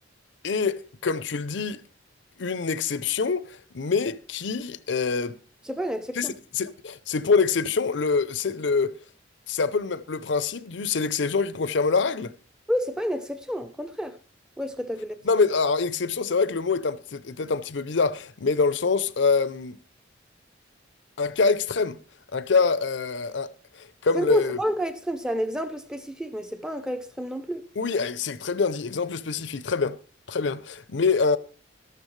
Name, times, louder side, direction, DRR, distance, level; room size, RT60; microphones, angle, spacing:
voice 1, 0.4-1.8 2.4-5.3 6.1-9.0 9.5-12.3 15.2-19.8 21.2-22.0 22.3-23.5 23.7-24.6 27.8-30.0 30.3-31.4, left 4 dB, 75° left, 0.6 m, -25 dB
voice 2, 5.7-6.3 12.7-14.2 14.6-15.2 24.1-27.7, equal, 5° right, 0.6 m, -30 dB
13.5 x 12.0 x 3.2 m
head